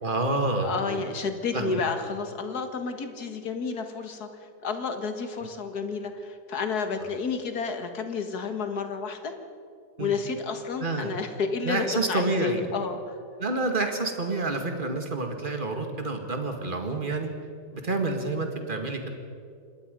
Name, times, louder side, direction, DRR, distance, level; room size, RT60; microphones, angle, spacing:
voice 1, 0.0-1.1 1.5-1.8 10.0-10.1 10.8-11.2 11.6-12.7 13.4-17.3 17.7-19.1, right 2 dB, 30° right, 4 dB, 2.2 m, -28 dB
voice 2, 0.6-9.3 10.0-13.2, left 4 dB, 65° left, 7 dB, 2.1 m, -31 dB
26.0 x 20.5 x 5.3 m, 2.3 s
omnidirectional pair, 1.8 m